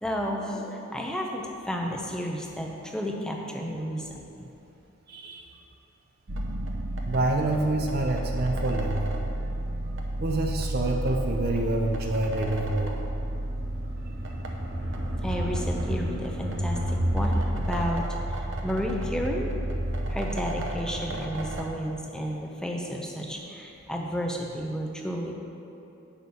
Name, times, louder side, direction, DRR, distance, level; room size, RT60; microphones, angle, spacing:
voice 1, 0.0-4.5 15.2-19.5 20.1-25.3, equal, 5° left, 0 dB, 0.7 m, -32 dB
voice 2, 5.1-5.5 7.1-9.2 10.2-12.9 20.0-20.1, right 2 dB, 50° right, 1 dB, 0.6 m, -27 dB
sound 1, 6.3-21.6, right 1 dB, 70° right, 0.9 m, -31 dB
8.1 x 6.3 x 5.4 m, 2.8 s
head